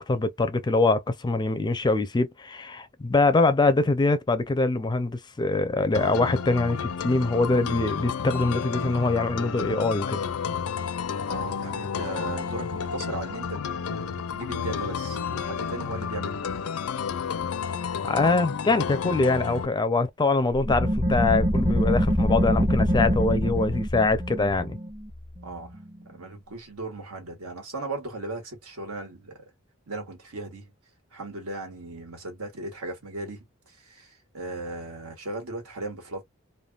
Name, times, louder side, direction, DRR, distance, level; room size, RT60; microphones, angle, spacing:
voice 1, 0.0-10.2 18.0-24.8, left 3 dB, 20° left, 0.4 m, -24 dB
sound 1, 5.9-19.7, left 6 dB, 80° left, 0.5 m, -31 dB
voice 2, 11.3-16.5 25.4-29.5 29.9-30.7 31.1-36.2, right 2 dB, 85° right, 1.6 m, -37 dB
sound 2, 20.6-25.9, equal, 25° right, 1.1 m, -25 dB
3.3 x 2.2 x 2.3 m
head